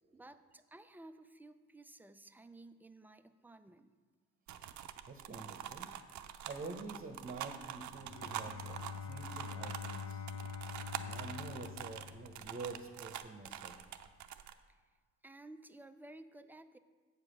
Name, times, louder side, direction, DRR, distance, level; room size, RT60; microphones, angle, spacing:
voice 1, 0.1-3.9 14.7-14.8 15.2-16.8, right 2 dB, 5° right, 10 dB, 0.4 m, -55 dB
sound 1, 4.5-14.5, right 10 dB, 70° right, 0.6 m, -45 dB
sound 2, 5.0-6.9 8.2-9.1 10.3-10.6, left 3 dB, 40° left, 1.3 m, -60 dB
voice 2, 5.1-5.9 6.4-10.3 10.9-13.8, right 3 dB, 30° right, 6 dB, 0.9 m, -47 dB
Bowed string instrument, 7.9-12.8, left 6 dB, 65° left, 0.7 m, -45 dB
8.0 x 5.0 x 6.6 m, 1.5 s
cardioid pair, 90°, 30 cm